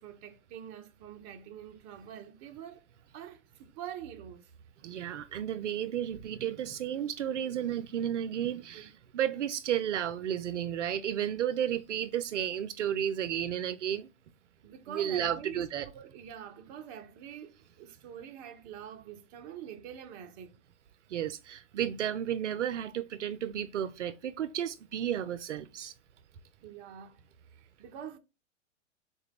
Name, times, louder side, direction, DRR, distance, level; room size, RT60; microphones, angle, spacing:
voice 1, 0.0-2.9 3.1-4.5 8.7-8.9 14.6-15.7 15.9-20.6 26.6-27.2 27.6-28.2, right 9 dB, 25° right, 0.5 m, -45 dB
voice 2, 4.8-14.1 14.9-15.9 21.1-25.9, right 10 dB, 70° right, 0.5 m, -33 dB
4.6 x 2.2 x 3.4 m
hypercardioid pair, 115°, 38 cm